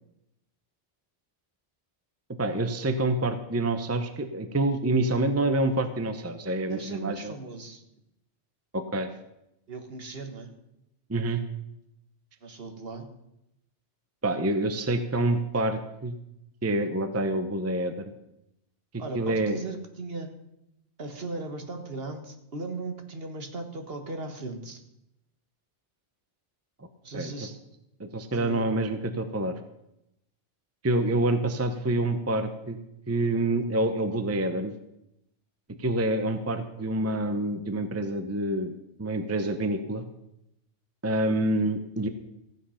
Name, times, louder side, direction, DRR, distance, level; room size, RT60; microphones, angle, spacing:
voice 1, 2.4-7.3 8.7-9.1 11.1-11.4 14.2-16.1 16.6-17.9 19.1-19.6 27.1-27.5 28.0-29.5 30.8-32.8 33.1-34.7 35.8-38.7 39.0-40.0 41.0-42.1, right 2 dB, 15° right, 9 dB, 0.7 m, -27 dB
voice 2, 6.7-7.8 9.7-10.5 12.4-13.1 19.0-20.3 21.0-24.8 27.0-27.5 28.3-28.7, right 3 dB, 55° right, 6 dB, 1.6 m, -37 dB
15.0 x 8.8 x 5.7 m, 0.85 s
omnidirectional pair, 1.2 m